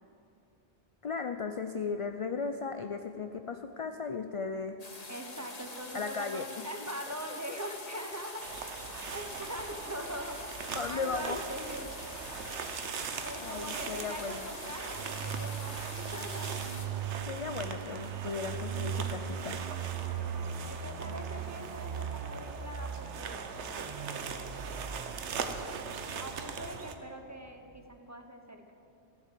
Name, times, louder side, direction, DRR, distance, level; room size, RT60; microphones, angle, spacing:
voice 1, 1.0-4.8 5.9-6.6 10.7-11.4 13.4-14.5 17.3-19.6, left 5 dB, 55° left, 7 dB, 0.3 m, -36 dB
sound 1, 4.8-16.9, left 2 dB, 35° left, 1.4 m, -45 dB
voice 2, 5.1-8.4 9.1-10.5 10.9-11.9 13.2-16.6 20.0-24.6 26.1-28.7, right 1 dB, 15° right, 4 dB, 0.9 m, -43 dB
sound 2, 8.4-26.9, right 6 dB, 85° right, 1.1 m, -41 dB
sound 3, 14.9-27.3 27.6-27.8, right 8 dB, 45° right, 0.6 m, -39 dB
14.0 x 7.4 x 7.5 m, 2.7 s
omnidirectional pair, 1.1 m